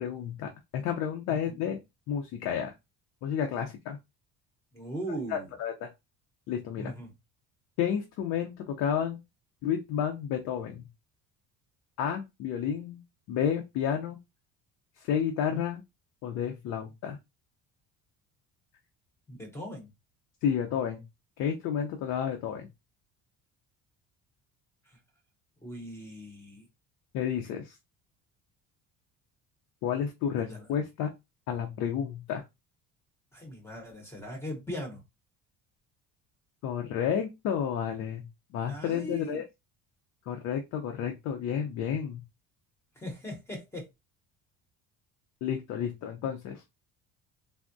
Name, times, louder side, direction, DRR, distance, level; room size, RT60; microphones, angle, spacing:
voice 1, 0.0-1.8 2.1-2.7 3.2-4.0 5.3-5.9 6.5-6.9 7.8-9.2 9.6-10.9 12.0-13.0 13.3-14.2 15.0-15.8 16.2-17.2 20.4-21.0 21.4-22.7 27.1-27.7 29.8-31.1 31.5-32.4 36.6-39.4 40.3-42.2 45.4-46.6, left 8 dB, 60° left, 4 dB, 0.5 m, -31 dB
voice 2, 4.7-5.5 6.8-7.1 19.3-19.9 24.9-25.0 25.6-26.7 30.4-30.7 33.3-35.0 38.7-39.4 43.0-43.9, equal, 10° left, 2 dB, 0.7 m, -39 dB
3.4 x 2.0 x 2.5 m, 0.22 s
cardioid pair, 175°, 31 cm